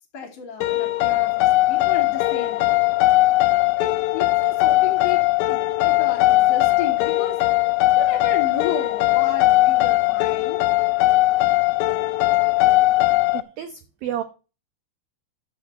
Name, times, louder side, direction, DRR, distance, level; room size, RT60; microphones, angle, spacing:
voice 1, 0.1-2.8 3.8-7.4 7.9-10.6, left 6 dB, 40° left, -2 dB, 3.1 m, -33 dB
sound 1, 0.6-13.4, left 19 dB, 85° left, 2.4 m, -19 dB
voice 2, 13.3-14.2, right 10 dB, 85° right, 8 dB, 2.1 m, -31 dB
11.5 x 4.7 x 7.8 m, 0.32 s
omnidirectional pair, 5.5 m